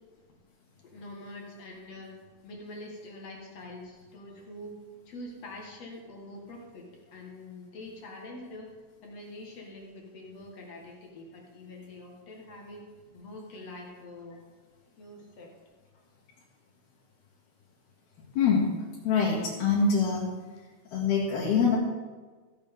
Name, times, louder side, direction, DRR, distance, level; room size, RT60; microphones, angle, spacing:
voice 1, 0.8-2.1 2.4-4.8 5.1-6.9 7.1-8.7 9.0-12.8 13.1-14.4 15.0-15.5, left 1 dB, 50° left, -1 dB, 2.2 m, -45 dB
voice 2, 18.4-18.7 19.1-20.3 20.9-21.8, left 5 dB, 75° left, -6 dB, 3.8 m, -24 dB
15.0 x 8.8 x 3.6 m, 1.4 s
omnidirectional pair, 4.5 m